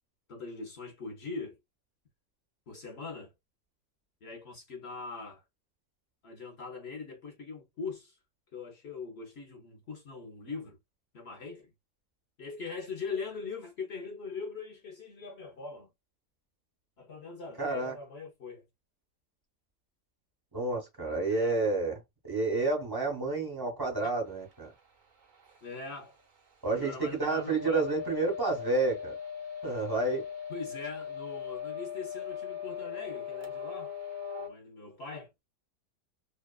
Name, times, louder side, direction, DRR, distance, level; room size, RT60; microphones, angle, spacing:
voice 1, 0.3-1.6 2.7-3.3 4.2-5.4 6.2-8.2 8.5-10.8 11.1-11.7 12.4-15.9 17.0-18.6 21.3-21.6 25.6-26.2 26.7-27.8 30.5-33.9 34.4-35.3, left 4 dB, 55° left, 0.7 m, -41 dB
voice 2, 17.6-17.9 20.5-22.0 22.3-24.7 26.6-29.1 29.6-30.2, right 3 dB, 20° right, 0.6 m, -30 dB
sound 1, 27.5-34.5, left 7 dB, 75° right, 0.4 m, -39 dB
2.9 x 2.2 x 2.2 m
omnidirectional pair, 1.8 m